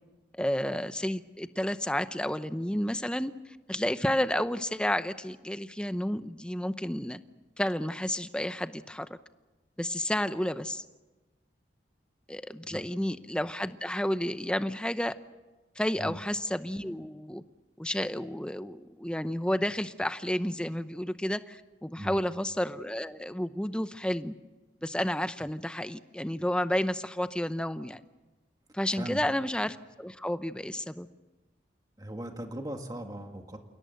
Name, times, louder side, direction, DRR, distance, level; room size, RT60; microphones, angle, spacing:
voice 1, 0.3-7.2 7.6-9.2 9.8-10.9 12.3-15.2 15.8-17.4 17.8-24.3 24.8-28.0 28.7-31.1, left 1 dB, 5° left, 12 dB, 0.7 m, -31 dB
voice 2, 32.0-33.6, right 1 dB, 20° right, 4 dB, 1.8 m, -38 dB
29.0 x 17.5 x 7.9 m, 1.2 s
head